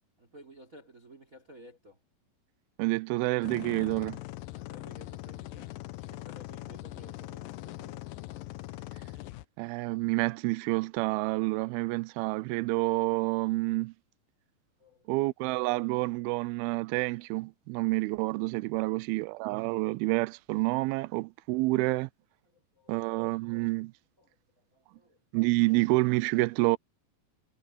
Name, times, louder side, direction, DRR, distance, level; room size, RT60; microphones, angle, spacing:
voice 1, 0.2-2.0 4.5-8.0 14.8-15.2 18.7-19.0 22.5-23.0 24.2-25.2, right 1 dB, 25° right, 3.5 m, -55 dB
voice 2, 2.8-4.2 9.6-13.9 15.1-22.1 22.9-23.9 25.3-26.8, right 22 dB, 90° right, 2.4 m, -28 dB
sound 1, 3.4-9.4, left 17 dB, 75° left, 2.3 m, -42 dB
omnidirectional pair, 4.3 m